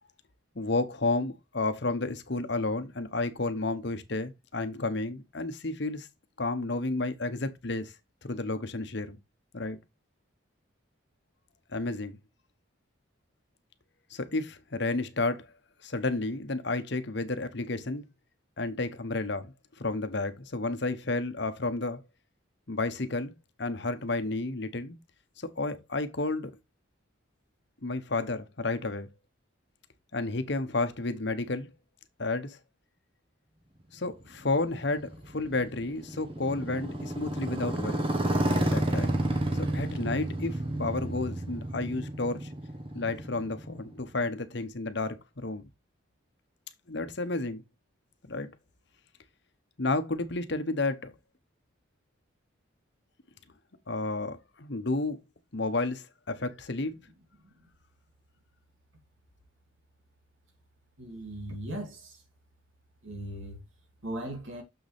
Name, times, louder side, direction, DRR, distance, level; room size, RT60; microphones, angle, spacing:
voice 1, 0.5-6.1 6.4-7.9 8.2-9.2 9.5-9.8 11.7-12.2 14.1-15.5 15.8-18.0 18.6-22.0 22.7-23.3 23.6-25.0 25.4-26.5 27.8-29.1 30.1-31.7 32.2-32.6 33.9-38.1 38.6-39.2 39.7-42.5 42.9-45.6 46.9-47.6 48.3-48.5 49.8-51.1 53.9-55.2 55.5-56.9, left 2 dB, 55° left, 1.0 m, -31 dB
Motorcycle, 34.2-44.2, right 1 dB, 25° right, 1.1 m, -31 dB
voice 2, 61.0-62.0 63.0-63.6 64.0-64.6, right 1 dB, 75° right, 2.7 m, -37 dB
6.8 x 6.5 x 3.5 m
head